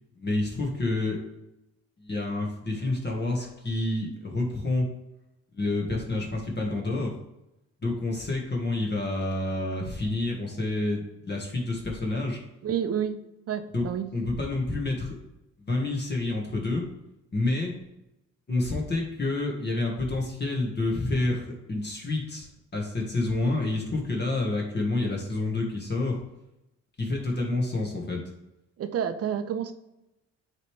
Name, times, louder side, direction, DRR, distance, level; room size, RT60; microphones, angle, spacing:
voice 1, 0.2-1.2 2.0-4.9 5.5-7.1 7.8-12.4 13.7-13.8 14.1-15.2 15.6-16.8 17.3-17.7 18.5-26.2 27.0-28.2, left 2 dB, 35° left, -1 dB, 1.4 m, -28 dB
voice 2, 12.6-13.2 13.5-14.1 28.8-29.7, right 8 dB, 50° right, 9 dB, 0.7 m, -29 dB
9.4 x 3.2 x 3.2 m, 0.90 s
cardioid pair, 90°, 30 cm